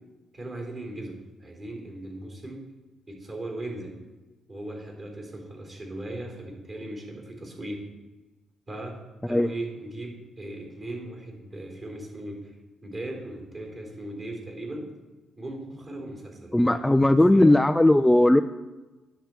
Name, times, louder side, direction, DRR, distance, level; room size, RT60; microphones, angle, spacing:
voice 1, 0.3-2.6 3.1-4.0 4.5-7.8 8.7-9.0 9.3-12.5 12.8-14.9 15.4-17.5, right 1 dB, 35° right, 0 dB, 3.8 m, -38 dB
voice 2, 16.5-18.4, left 1 dB, 10° left, 8 dB, 0.3 m, -18 dB
10.0 x 6.9 x 4.6 m, 1.2 s
cardioid pair, 90°, 0 cm